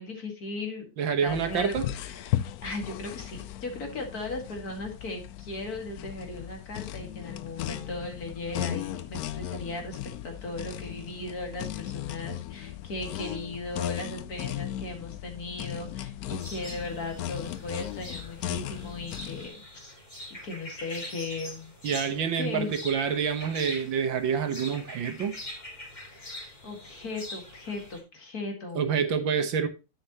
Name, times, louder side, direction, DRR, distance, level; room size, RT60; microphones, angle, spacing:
voice 1, 0.0-0.9 1.2-20.0 20.4-21.7 22.4-22.7 26.0-29.0, left 2 dB, 50° left, 3 dB, 2.4 m, -37 dB
voice 2, 1.0-1.9 21.8-25.3 28.8-29.7, right 7 dB, 70° right, 7 dB, 1.8 m, -27 dB
sound 1, 1.3-19.5, left 12 dB, 90° left, 0.8 m, -36 dB
sound 2, 16.4-28.0, left 1 dB, 20° left, 2.3 m, -43 dB
9.6 x 8.0 x 2.9 m, 0.29 s
omnidirectional pair, 2.2 m